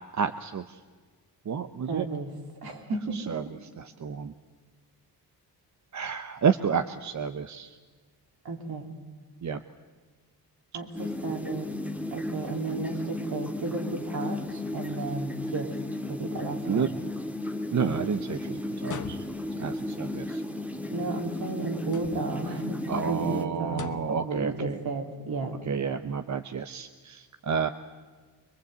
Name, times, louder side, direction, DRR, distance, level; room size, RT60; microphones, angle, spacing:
voice 1, 0.1-0.8 1.5-2.1 3.1-4.3 5.9-7.8 9.4-9.6 16.7-16.9 17.7-19.2 19.6-20.4 22.9-24.8 25.7-27.7, right 6 dB, 45° right, 10 dB, 0.9 m, -30 dB
voice 2, 1.9-2.3 2.6-3.3 8.5-8.9 10.7-11.7 12.1-15.7 16.1-16.9 20.9-25.6, right 3 dB, 65° right, 3 dB, 3.5 m, -33 dB
sound 1, 11.0-23.5, left 1 dB, 5° right, 1.7 m, -34 dB
sound 2, 18.8-19.6 21.8-22.5 23.7-24.2, left 7 dB, 45° left, 1.4 m, -40 dB
24.5 x 20.0 x 8.1 m, 1.5 s
cardioid pair, 100°, 40 cm